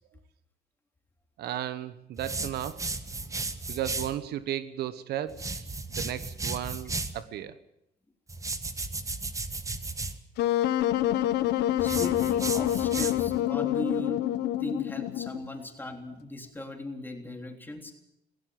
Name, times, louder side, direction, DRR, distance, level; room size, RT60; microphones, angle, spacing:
voice 1, 1.4-3.3 3.7-7.6, right 11 dB, 70° right, 14 dB, 1.2 m, -35 dB
sound 1, 2.2-4.2 5.3-7.2 8.3-10.2 11.8-13.4, right 3 dB, 20° right, 1.4 m, -35 dB
Wind instrument woodwind instrument, 10.4-15.5, left 13 dB, 80° left, 1.2 m, -27 dB
voice 2, 11.8-14.3 14.6-17.9, left 1 dB, 10° left, 4 dB, 3.4 m, -38 dB
17.0 x 16.5 x 9.4 m, 0.81 s
cardioid pair, 110°, 17 cm